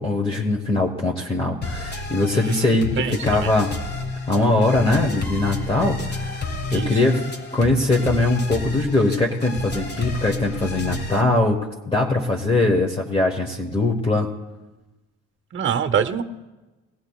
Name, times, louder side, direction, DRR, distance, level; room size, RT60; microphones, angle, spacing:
voice 1, 0.0-3.7 4.3-6.4 6.7-7.2 7.5-14.3, left 2 dB, 20° left, 0 dB, 1.3 m, -21 dB
sound 1, 1.6-11.2, left 3 dB, 35° left, 1.6 m, -31 dB
voice 2, 2.3-2.7 3.0-3.5 6.7-6.9 15.5-16.2, right 7 dB, 40° right, 9 dB, 0.8 m, -24 dB
21.0 x 16.0 x 2.4 m, 1.1 s
cardioid pair, 90°, 30 cm